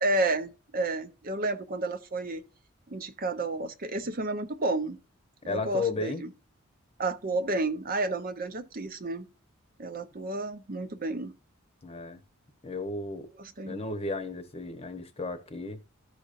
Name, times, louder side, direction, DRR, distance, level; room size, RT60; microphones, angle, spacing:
voice 1, 0.0-2.4 2.9-5.0 5.4-6.3 7.0-9.3 9.8-11.3 13.4-13.8, right 2 dB, 45° right, 0.7 m, -31 dB
voice 2, 5.5-6.2 11.8-12.2 12.6-13.3 13.7-15.8, left 3 dB, 30° left, 1.0 m, -34 dB
14.5 x 5.1 x 2.5 m
head